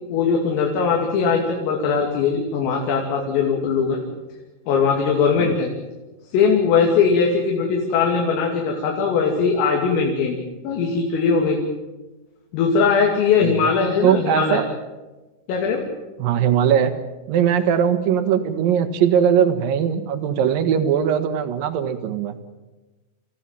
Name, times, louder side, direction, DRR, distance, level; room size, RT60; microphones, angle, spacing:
voice 1, 0.1-4.0 4.7-5.7 6.3-10.4 10.7-11.6 12.5-14.6 15.5-15.8, left 5 dB, 75° left, 0 dB, 5.3 m, -20 dB
voice 2, 14.0-14.6 16.2-16.9 17.3-22.4, right 8 dB, 65° right, 10 dB, 2.3 m, -20 dB
28.5 x 16.0 x 9.0 m, 1.1 s
omnidirectional pair, 6.0 m